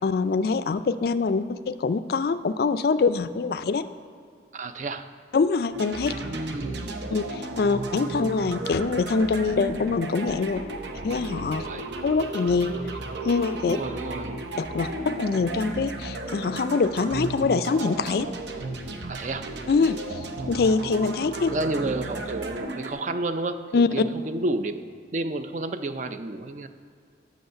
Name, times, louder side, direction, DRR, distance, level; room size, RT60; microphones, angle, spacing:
voice 1, 0.0-3.8 5.3-6.1 7.1-10.6 11.0-11.6 12.0-12.8 13.2-13.8 14.6-18.3 19.7-20.0 20.5-21.5 23.7-23.9, left 4 dB, 55° left, 13 dB, 0.3 m, -24 dB
voice 2, 4.5-5.1 6.1-7.0 11.6-11.9 13.6-14.4 19.1-19.5 21.5-24.8 25.1-26.7, right 2 dB, 40° right, 9 dB, 0.4 m, -31 dB
sound 1, 5.7-22.9, right 2 dB, 70° right, 0.8 m, -34 dB
8.0 x 6.3 x 6.5 m, 2.2 s
head